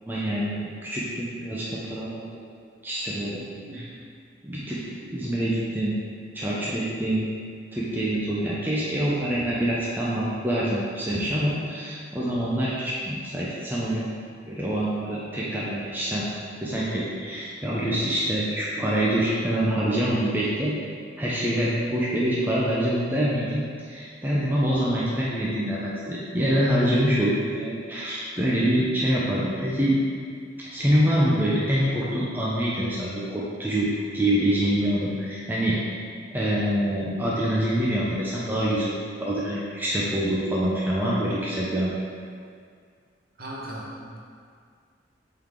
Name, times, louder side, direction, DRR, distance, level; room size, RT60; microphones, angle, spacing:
voice 1, 0.0-2.3 2.8-3.4 3.7-3.8 4.4-5.9 6.3-7.3 7.7-14.1 14.4-16.2 16.6-20.8 21.2-30.0 30.6-33.9 34.1-36.0 36.3-41.9, right 1 dB, 10° right, -7 dB, 0.7 m, -25 dB
voice 2, 3.5-3.8 43.4-44.2, right 1 dB, 50° right, -5 dB, 1.3 m, -38 dB
7.5 x 3.9 x 3.7 m, 2.1 s
head